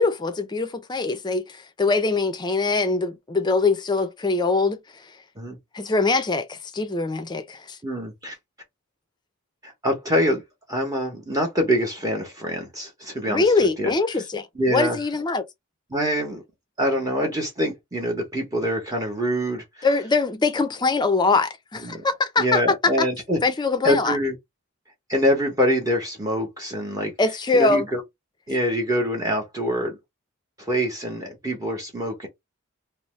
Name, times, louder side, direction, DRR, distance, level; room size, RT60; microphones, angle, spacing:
voice 1, 0.0-1.4 1.8-4.8 5.7-7.8 13.3-15.4 19.8-23.1 23.4-24.2 27.2-27.9, left 3 dB, 20° left, 0.4 m, -22 dB
voice 2, 7.8-8.4 9.6-10.4 10.7-13.9 14.5-15.0 15.9-16.4 16.8-19.9 21.8-22.0 22.4-23.4 23.8-24.4 25.1-27.1 27.5-28.0 28.5-30.0 30.6-32.3, equal, 15° right, 0.8 m, -25 dB
2.6 x 2.0 x 3.0 m
head